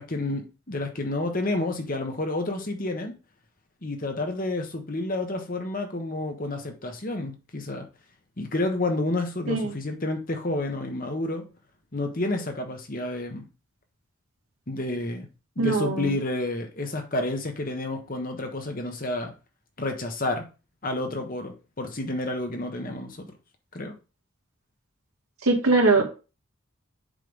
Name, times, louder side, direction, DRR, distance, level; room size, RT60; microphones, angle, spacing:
voice 1, 0.0-3.2 3.8-7.9 8.4-11.4 11.9-13.4 14.7-15.3 15.6-19.3 19.8-20.5 20.8-23.3 23.7-24.0, left 2 dB, 40° left, 5 dB, 1.2 m, -30 dB
voice 2, 15.6-16.1 25.4-26.0, right 3 dB, 80° right, 1 dB, 2.2 m, -21 dB
7.5 x 3.4 x 5.3 m, 0.32 s
head